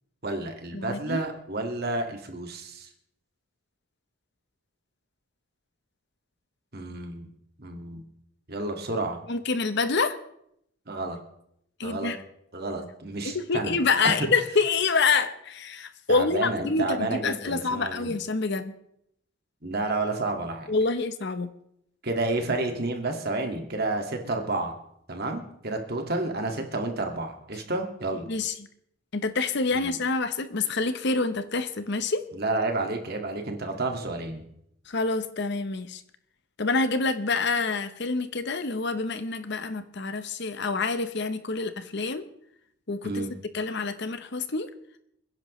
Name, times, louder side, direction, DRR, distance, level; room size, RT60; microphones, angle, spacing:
voice 1, 0.2-2.9 6.7-7.3 7.6-8.0 8.5-9.2 10.9-11.2 11.8-12.1 12.5-13.7 14.0-14.3 16.1-18.1 19.6-20.7 22.0-24.7 25.1-28.3 29.7-29.9 32.3-34.4 43.0-43.3, right 2 dB, 45° right, 3 dB, 1.9 m, -30 dB
voice 2, 0.7-1.2 9.3-10.2 11.8-12.2 13.2-18.7 20.7-21.5 28.3-28.5 29.1-32.2 34.9-36.0 36.6-42.3 42.9-43.2 43.5-44.7, left 4 dB, 50° left, 11 dB, 0.8 m, -27 dB
27.0 x 10.5 x 3.1 m, 0.74 s
head